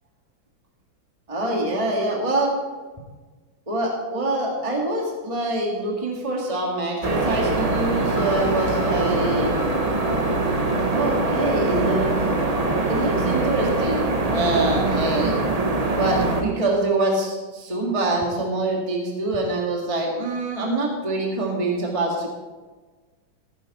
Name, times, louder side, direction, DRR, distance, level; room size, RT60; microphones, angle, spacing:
voice 1, 1.3-2.5 3.7-9.5 10.9-12.1 12.9-14.1 14.3-15.4 15.9-22.3, right 2 dB, 15° right, -1 dB, 1.8 m, -25 dB
sound 1, 7.0-16.4, right 2 dB, 35° right, 0.6 m, -23 dB
sound 2, 8.1-12.1, left 3 dB, 75° left, 2.2 m, -37 dB
15.5 x 10.5 x 4.2 m, 1.3 s
omnidirectional pair, 2.3 m